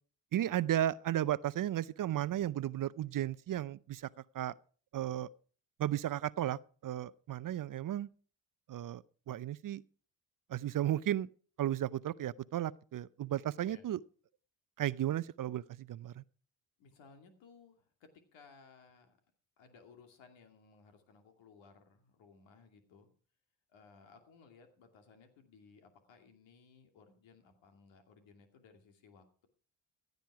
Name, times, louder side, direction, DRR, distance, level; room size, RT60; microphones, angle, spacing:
voice 1, 0.3-4.1 4.3-4.5 4.9-5.3 5.8-8.1 8.7-9.8 10.5-11.3 11.6-14.0 14.8-16.2, right 12 dB, 45° right, 0.6 m, -34 dB
voice 2, 16.8-19.2 19.6-23.1 23.7-29.5, left 5 dB, 75° left, 2.5 m, -60 dB
15.5 x 9.3 x 4.8 m
hypercardioid pair, 50°, 46 cm